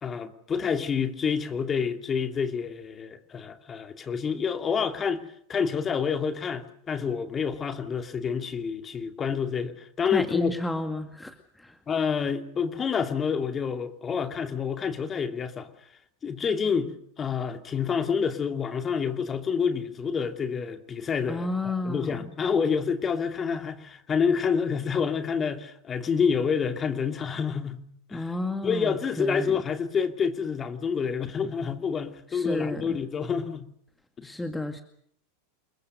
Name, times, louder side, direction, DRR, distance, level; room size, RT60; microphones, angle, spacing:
voice 1, 0.0-5.2 5.5-10.5 11.9-15.7 16.2-27.8 28.1-28.3 28.6-33.7 34.2-34.3, left 6 dB, 25° left, 2.6 m, -28 dB
voice 2, 10.1-11.8 21.3-22.3 28.1-29.6 32.3-33.0 34.2-34.8, left 1 dB, 5° left, 2.1 m, -32 dB
28.5 x 22.5 x 6.5 m
figure-of-eight pair, 90°, 0 cm